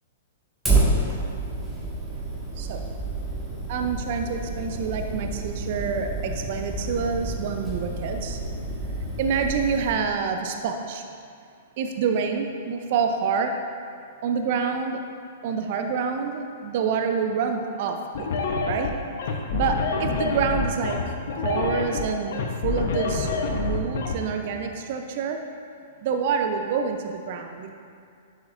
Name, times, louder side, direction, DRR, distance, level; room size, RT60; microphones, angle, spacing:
Fire, 0.7-9.9, right 2 dB, 5° right, 1.7 m, -29 dB
voice 1, 3.7-8.4 9.2-11.0 11.8-13.5 14.2-15.0 15.4-18.9 19.5-21.0 21.4-22.4 22.6-25.4 26.0-27.7, right 6 dB, 50° right, 5 dB, 0.5 m, -27 dB
sound 1, 18.2-24.2, left 4 dB, 55° left, 0.9 m, -27 dB
10.5 x 7.1 x 2.5 m, 2.3 s
figure-of-eight pair, 110°, 0 cm